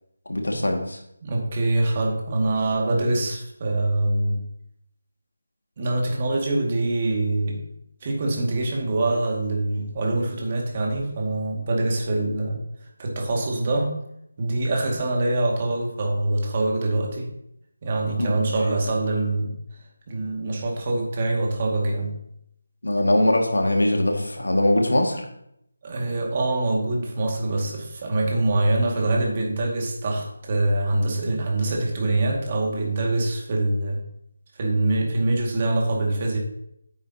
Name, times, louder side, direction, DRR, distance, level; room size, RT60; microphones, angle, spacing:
voice 1, 0.3-1.0 18.2-18.8 22.8-25.3, left 1 dB, 85° left, 2 dB, 2.0 m, -22 dB
voice 2, 1.2-4.4 5.8-7.7 8.0-12.6 13.0-14.0 14.4-17.3 17.8-19.5 20.1-22.2 25.8-34.0 34.6-36.4, right 2 dB, 35° right, 0 dB, 2.1 m, -24 dB
9.6 x 8.9 x 2.9 m, 0.75 s
figure-of-eight pair, 165°, 0 cm